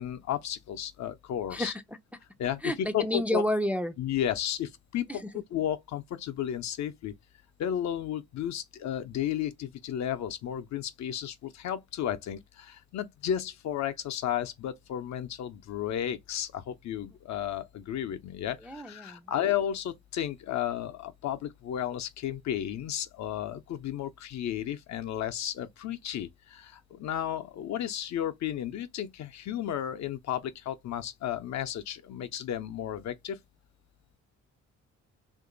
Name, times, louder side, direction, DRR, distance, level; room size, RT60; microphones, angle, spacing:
voice 1, 0.0-1.7 2.4-3.4 4.0-7.1 7.6-33.4, left 10 dB, 65° left, 0.6 m, -33 dB
voice 2, 1.5-1.8 2.6-3.9 5.1-5.3 18.6-19.3, left 1 dB, 5° right, 0.4 m, -30 dB
2.9 x 2.6 x 3.8 m
cardioid pair, 90°, 30 cm